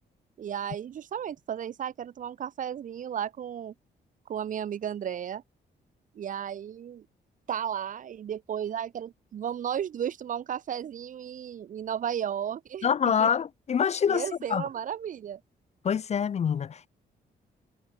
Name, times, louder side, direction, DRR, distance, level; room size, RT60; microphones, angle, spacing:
voice 1, 0.4-3.7 4.3-5.4 6.2-7.1 7.5-13.3 14.1-15.4, right 9 dB, 45° right, 0.4 m, -34 dB
voice 2, 12.8-14.6 15.8-16.9, left 7 dB, 40° left, 0.4 m, -26 dB
cardioid pair, 75°, 18 cm